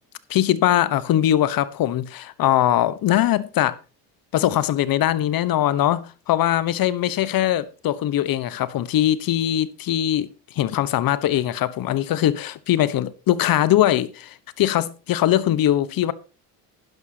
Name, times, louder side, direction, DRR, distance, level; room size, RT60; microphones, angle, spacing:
voice 1, 0.3-3.8 4.3-10.3 10.5-16.1, left 12 dB, 60° left, 1.2 m, -21 dB
11.5 x 11.0 x 2.9 m
supercardioid pair, 90°, 40 cm